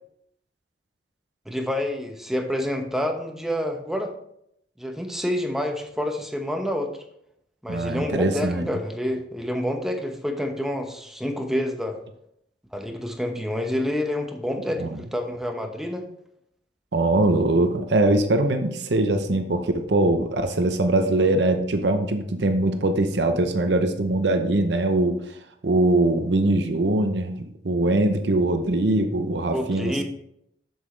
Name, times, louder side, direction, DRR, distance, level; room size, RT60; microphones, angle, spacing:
voice 1, 1.5-4.1 4.8-6.9 7.6-12.0 12.7-16.0 29.5-30.0, left 1 dB, ahead, 3 dB, 0.9 m, -28 dB
voice 2, 7.7-8.7 14.8-15.0 16.9-25.4 25.6-30.0, right 2 dB, 70° right, 6 dB, 0.7 m, -22 dB
7.2 x 7.2 x 3.2 m, 0.74 s
head